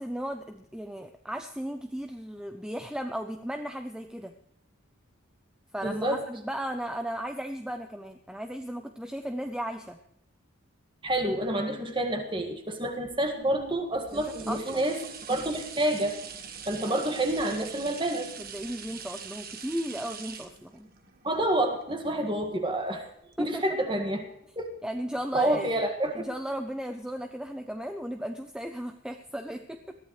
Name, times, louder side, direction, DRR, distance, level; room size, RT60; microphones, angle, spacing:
voice 1, 0.0-4.3 5.7-10.0 14.1-14.8 16.9-17.1 18.4-20.9 23.4-23.6 24.8-25.7 26.2-30.0, equal, 5° right, 6 dB, 0.6 m, -35 dB
voice 2, 5.8-6.2 11.0-15.0 15.3-16.2 16.7-18.3 21.2-23.1 23.4-24.2 24.6-24.7 25.3-26.3, right 1 dB, 25° right, 4 dB, 1.8 m, -28 dB
sound 1, 13.3-22.8 23.3-23.4, right 6 dB, 45° right, 1.5 m, -43 dB
20.5 x 14.0 x 3.2 m, 0.76 s
head